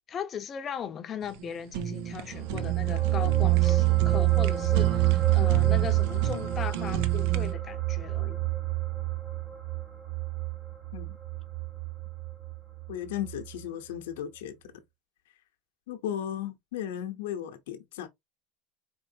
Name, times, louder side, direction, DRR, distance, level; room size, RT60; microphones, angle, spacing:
voice 1, 0.1-8.4, left 8 dB, 30° left, 0.7 m, -38 dB
Fire, 1.2-7.5, right 9 dB, 65° right, 0.6 m, -34 dB
sound 1, 2.2-12.9 13.2-13.4, right 17 dB, 20° right, 1.4 m, -27 dB
voice 2, 12.9-14.5 15.9-18.1, left 10 dB, 80° left, 0.8 m, -35 dB
4.5 x 3.1 x 2.7 m
supercardioid pair, 125°, 0 cm